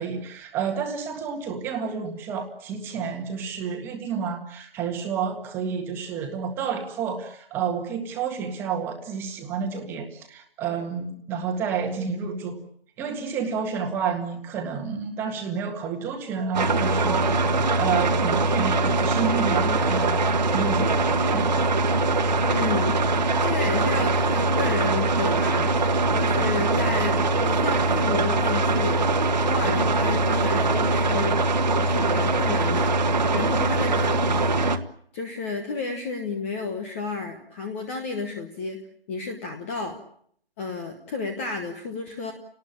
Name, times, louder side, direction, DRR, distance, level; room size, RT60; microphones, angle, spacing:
voice 1, 0.0-12.6 13.0-20.2 20.5-21.5, right 6 dB, 5° right, 3 dB, 1.7 m, -30 dB
sound 1, 16.5-34.8, right 3 dB, 45° right, 1.7 m, -22 dB
voice 2, 22.4-23.0 23.4-29.0 29.4-31.4 31.7-34.7 35.1-38.8 39.1-40.0 40.6-42.3, left 4 dB, 15° left, 5 dB, 1.2 m, -32 dB
30.0 x 19.0 x 8.7 m, 0.68 s
figure-of-eight pair, 165°, 30 cm